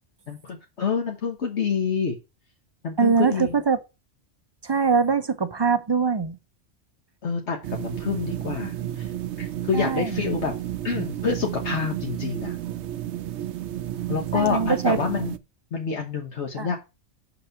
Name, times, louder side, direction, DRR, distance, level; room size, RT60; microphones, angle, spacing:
voice 1, 0.3-2.2 2.8-3.6 7.2-9.1 9.4-10.5 10.8-12.5 14.1-15.4 15.7-16.8, left 6 dB, 70° left, 1.4 m, -27 dB
voice 2, 3.0-3.8 4.6-6.4 9.7-10.2 14.3-15.0 16.6-16.7, right 5 dB, 35° right, 0.4 m, -22 dB
sound 1, 7.6-15.4, right 12 dB, 70° right, 0.9 m, -32 dB
6.0 x 6.0 x 5.7 m
omnidirectional pair, 1.2 m